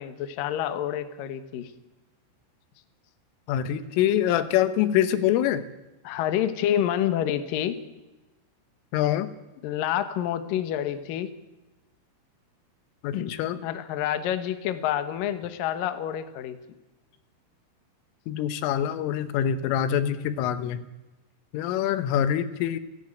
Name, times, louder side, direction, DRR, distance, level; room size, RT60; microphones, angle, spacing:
voice 1, 0.0-1.7 6.0-7.8 9.6-11.3 13.1-13.3 13.6-16.6, left 11 dB, 65° left, 10 dB, 2.3 m, -28 dB
voice 2, 3.5-5.7 8.9-9.3 13.0-13.6 18.3-20.8 21.5-22.8, left 10 dB, 85° left, 12 dB, 3.6 m, -25 dB
29.5 x 11.0 x 8.8 m, 1.1 s
omnidirectional pair, 5.7 m